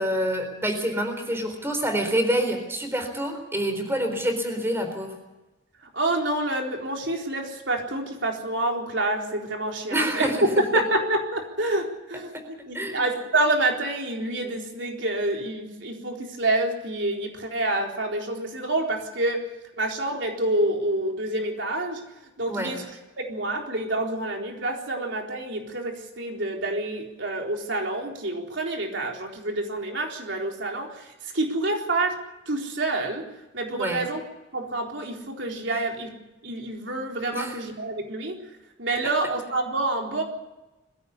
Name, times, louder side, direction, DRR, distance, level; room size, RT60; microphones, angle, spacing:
voice 1, 0.0-5.1 9.9-10.4 12.7-13.0 22.5-22.8 33.8-34.1 37.3-37.6, equal, 15° right, 6 dB, 4.1 m, -27 dB
voice 2, 5.8-19.5 19.8-22.0 22.4-22.8 23.2-32.2 32.5-33.2 33.5-34.2 34.5-36.2 36.4-38.4 38.8-40.2, right 2 dB, 70° right, 1 dB, 4.1 m, -27 dB
22.5 x 16.5 x 8.4 m, 1.0 s
head